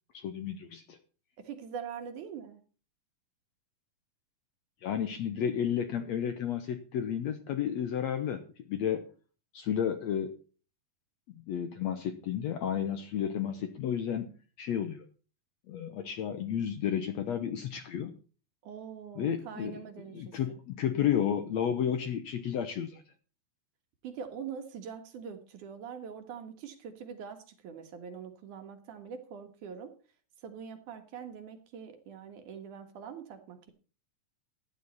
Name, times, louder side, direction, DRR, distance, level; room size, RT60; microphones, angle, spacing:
voice 1, 0.1-1.0 4.8-8.4 8.7-9.1 9.5-10.4 11.3-15.0 15.7-18.2 19.1-19.8 20.1-23.0, left 9 dB, 70° left, 9 dB, 1.8 m, -32 dB
voice 2, 1.4-2.6 18.6-20.3 24.0-27.4 27.6-29.9 30.4-33.7, right 7 dB, 65° right, 7 dB, 2.9 m, -43 dB
14.5 x 10.0 x 4.1 m, 0.37 s
omnidirectional pair, 4.0 m